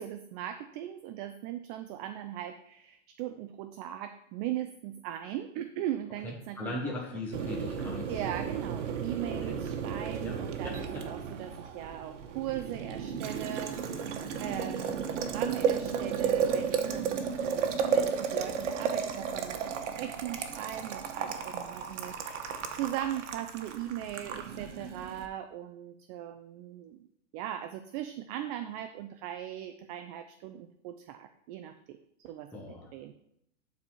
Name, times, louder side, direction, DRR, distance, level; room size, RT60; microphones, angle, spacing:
voice 1, 0.0-7.2 8.1-27.1 27.3-33.1, right 12 dB, 35° right, 9 dB, 0.5 m, -39 dB
voice 2, 6.2-8.2 9.5-9.6 10.2-10.4 10.6-11.0 32.5-32.9, left 2 dB, 5° left, -4 dB, 1.1 m, -39 dB
Boiling, 7.3-25.3, right 6 dB, 75° right, 1.2 m, -33 dB
11.5 x 4.2 x 4.6 m, 0.76 s
hypercardioid pair, 130°, 37 cm